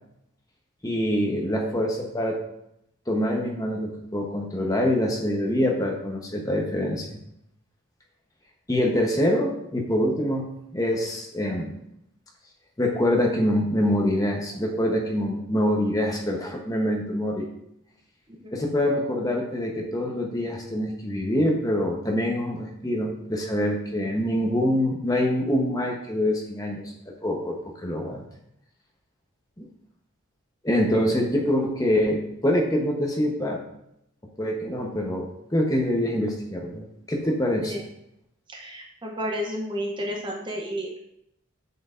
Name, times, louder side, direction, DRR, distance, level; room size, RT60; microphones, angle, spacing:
voice 1, 0.8-2.4 3.1-7.2 8.7-11.7 12.8-17.5 18.5-26.9 27.2-28.2 29.6-29.7 30.6-33.6 34.4-37.8, left 1 dB, 15° left, 0 dB, 1.0 m, -25 dB
voice 2, 38.5-41.0, equal, 20° right, 0 dB, 0.8 m, -32 dB
7.9 x 7.7 x 2.6 m, 0.78 s
head